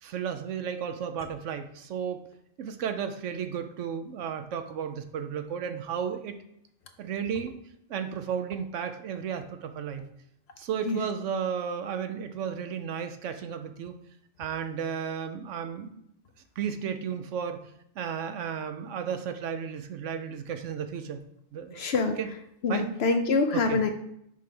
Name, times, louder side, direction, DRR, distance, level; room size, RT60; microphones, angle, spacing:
voice 1, 0.0-2.3 2.6-6.4 7.0-7.6 7.9-10.1 10.6-13.9 14.4-16.0 16.6-17.7 18.0-21.2 21.5-21.9 22.2-22.3 22.7-22.9 23.5-23.8, right 7 dB, 70° right, 8 dB, 0.9 m, -33 dB
voice 2, 21.7-22.2 22.6-23.9, left 3 dB, 60° left, 6 dB, 0.7 m, -25 dB
6.6 x 3.3 x 5.3 m, 0.76 s
omnidirectional pair, 1.4 m